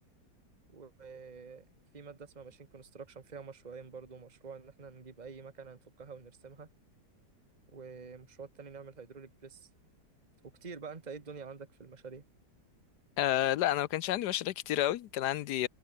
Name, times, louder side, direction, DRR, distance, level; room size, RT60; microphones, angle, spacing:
voice 1, 0.7-1.7 1.9-6.7 7.7-9.7 10.6-12.2, right 5 dB, 25° right, 1.7 m, -47 dB
voice 2, 13.2-15.7, left 13 dB, 70° left, 1.2 m, -30 dB
omnidirectional pair, 1.9 m